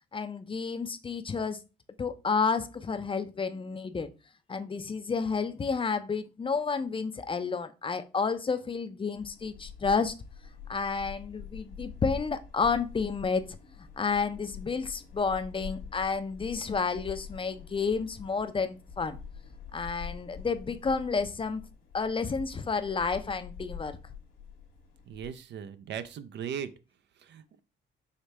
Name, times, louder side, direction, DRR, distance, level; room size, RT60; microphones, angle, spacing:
voice 1, 0.1-1.6 2.0-4.1 4.5-10.1 10.7-13.6 14.0-19.2 19.7-21.6 21.9-24.0, left 5 dB, 25° left, 0.5 m, -30 dB
sound 1, 9.1-25.4, left 6 dB, 90° left, 1.3 m, -45 dB
voice 2, 25.1-26.7 27.2-27.6, right 8 dB, 60° right, 0.5 m, -38 dB
5.0 x 3.1 x 3.2 m
cardioid pair, 90°, 20 cm